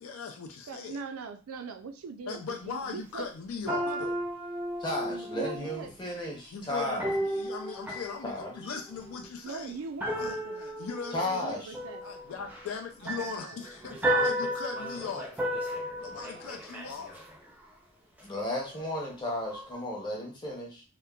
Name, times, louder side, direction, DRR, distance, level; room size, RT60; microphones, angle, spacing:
voice 1, 0.0-1.0 2.3-4.2 6.5-9.8 10.2-11.2 12.0-15.3 16.0-17.2, left 5 dB, 80° left, 4 dB, 0.4 m, -39 dB
voice 2, 0.7-3.3 3.9-4.1 5.1-5.9 9.4-10.8 11.1-12.2 13.0-13.6, right 5 dB, 85° right, 7 dB, 0.4 m, -42 dB
sound 1, 2.3-2.4 3.7-6.0 7.0-9.3 10.0-17.6 18.2-19.1 19.4-19.8, right 1 dB, 5° right, 0.3 m, -34 dB
voice 3, 4.8-7.1 8.2-8.5 11.1-11.7 18.2-20.8, left 1 dB, 20° left, -1 dB, 0.7 m, -34 dB
2.8 x 2.1 x 2.3 m, 0.32 s
head